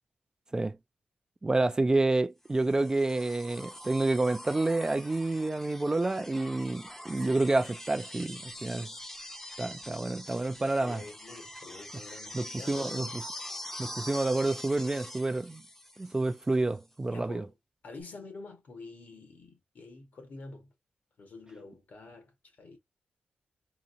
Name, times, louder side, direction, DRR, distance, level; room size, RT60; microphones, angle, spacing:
voice 1, 1.4-8.9 9.6-11.0 12.3-13.1 13.8-15.6 16.0-17.4, right 2 dB, 20° right, 0.3 m, -29 dB
sound 1, 2.5-16.5 18.0-18.1, left 1 dB, 10° left, 0.7 m, -44 dB
voice 2, 10.8-13.2 17.1-17.5 17.8-20.7 21.2-22.8, left 3 dB, 65° left, 1.8 m, -47 dB
3.9 x 2.6 x 2.7 m
cardioid pair, 90°, 3 cm